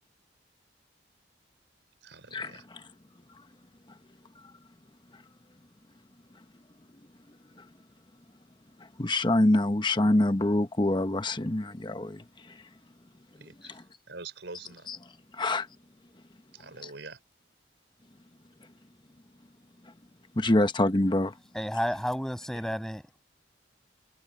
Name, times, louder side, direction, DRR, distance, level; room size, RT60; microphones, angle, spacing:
voice 1, 2.0-2.7 13.4-14.9 16.5-17.2, right 3 dB, 75° right, 4.7 m, -45 dB
voice 2, 9.0-12.2 14.9-15.0 15.4-15.7 20.4-21.3, left 1 dB, 25° left, 0.9 m, -25 dB
voice 3, 21.5-23.2, equal, 5° left, 7.8 m, -31 dB
head